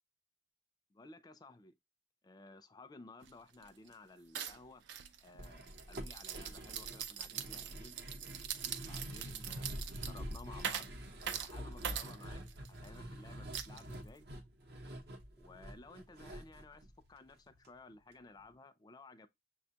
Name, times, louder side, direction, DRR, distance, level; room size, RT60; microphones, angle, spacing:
voice 1, 0.9-1.8 2.2-4.8 5.2-8.0 8.7-10.9 11.4-12.4 12.7-14.3 15.3-19.3, left 3 dB, 20° left, 0.4 m, -56 dB
sound 1, 3.2-3.3 3.6-3.9 4.3-12.9 13.5-14.2, right 9 dB, 80° right, 0.4 m, -43 dB
sound 2, 5.4-17.7 17.9-18.0 18.4-18.5, equal, 60° right, 0.7 m, -47 dB
6.5 x 2.2 x 2.8 m
head